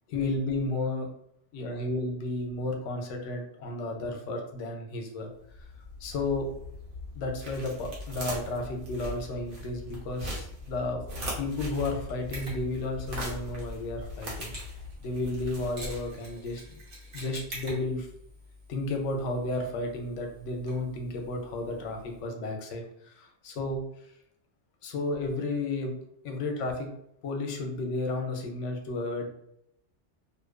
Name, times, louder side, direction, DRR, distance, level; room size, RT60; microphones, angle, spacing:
voice 1, 0.1-1.1 1.5-5.3 6.0-6.5 7.1-11.0 11.4-14.5 15.0-16.8 17.1-18.1 18.7-23.8 24.8-26.0 26.2-26.9 27.2-29.3, left 2 dB, 85° left, 3 dB, 0.9 m, -32 dB
sound 1, 5.4-16.4, left 1 dB, 85° right, 1.1 m, -40 dB
Mechanisms, 12.3-22.2, equal, 55° right, 1.0 m, -47 dB
2.6 x 2.2 x 2.3 m, 0.77 s
omnidirectional pair, 1.2 m